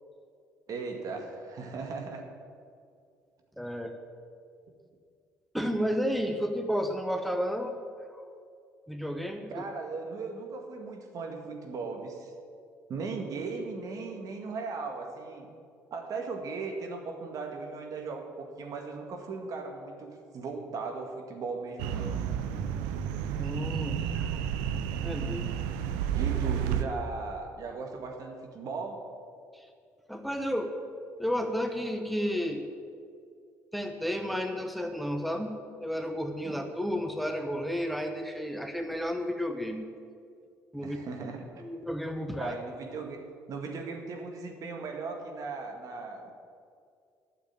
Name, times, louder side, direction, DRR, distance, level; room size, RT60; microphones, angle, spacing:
voice 1, 0.7-2.2 9.5-12.3 12.9-15.5 15.9-22.2 22.5-22.6 26.1-29.0 36.4-36.6 40.8-41.6 42.4-43.2 43.5-46.3, right 4 dB, 55° right, 3 dB, 2.0 m, -37 dB
voice 2, 3.6-4.0 5.5-7.7 8.1-8.2 8.9-9.6 23.4-24.4 25.0-25.5 29.5-29.7 30.1-30.7 31.2-32.7 33.7-39.9 40.7-41.0 41.6-42.5, equal, ahead, 5 dB, 1.1 m, -32 dB
sound 1, 21.8-26.8, right 9 dB, 80° right, 0.6 m, -31 dB
9.5 x 7.2 x 9.1 m, 2.3 s
hypercardioid pair, 65°, 7 cm